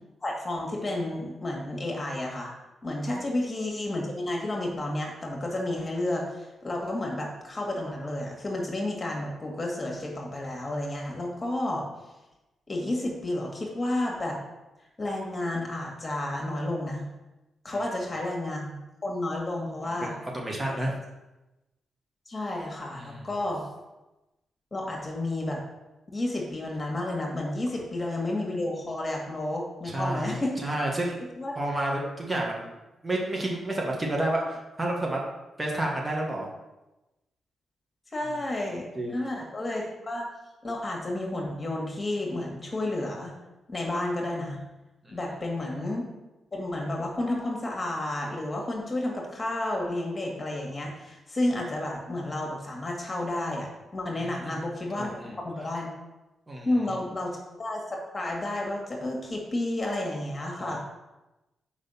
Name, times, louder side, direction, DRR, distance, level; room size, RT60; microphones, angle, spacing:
voice 1, 0.2-2.5 2.8-11.8 12.7-14.4 15.0-17.0 17.6-20.1 22.3-23.7 24.7-25.6 26.1-30.8 31.4-31.5 38.1-40.2 40.6-43.3 43.7-44.6 45.1-46.0 46.5-55.9 56.7-60.8, left 1 dB, 35° left, -1 dB, 1.9 m, -31 dB
voice 2, 19.8-20.9 22.9-23.3 29.8-31.2 31.6-32.7 33.0-35.2 35.6-36.5 38.9-39.1 45.0-45.2 54.1-54.6 55.0-55.4 56.5-56.8 60.6-60.8, right 1 dB, 25° right, -2 dB, 1.6 m, -30 dB
5.0 x 4.0 x 5.7 m, 1.0 s
hypercardioid pair, 45°, 0 cm